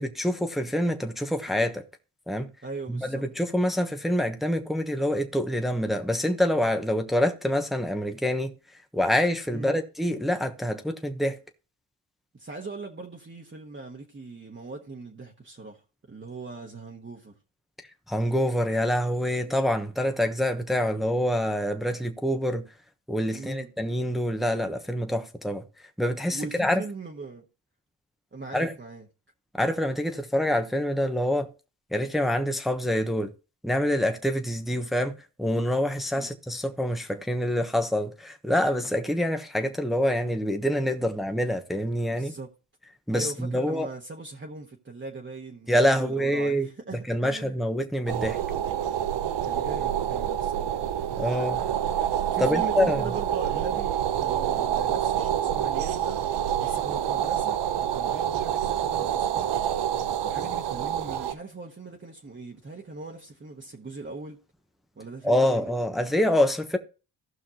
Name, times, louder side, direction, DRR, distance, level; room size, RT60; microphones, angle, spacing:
voice 1, 0.0-1.8 2.3-2.5 2.9-8.5 8.9-11.4 18.1-22.6 23.1-25.6 26.0-26.8 28.5-28.7 29.6-31.5 31.9-33.3 33.6-42.3 43.1-43.9 45.7-46.7 47.1-48.4 51.2-51.6 52.4-53.1 65.2-66.8, equal, ahead, 1.1 m, -26 dB
voice 2, 2.6-3.3 9.5-9.8 12.3-15.8 16.1-17.3 19.4-19.6 23.3-23.7 26.3-27.4 28.3-29.0 36.2-36.3 42.1-42.5 43.1-47.6 49.5-50.8 52.3-56.2 56.6-59.5 60.2-64.4 65.0-65.7, right 3 dB, 25° right, 1.4 m, -40 dB
sound 1, 48.1-61.3, right 10 dB, 70° right, 0.8 m, -27 dB
15.5 x 5.7 x 2.9 m
cardioid pair, 70°, 43 cm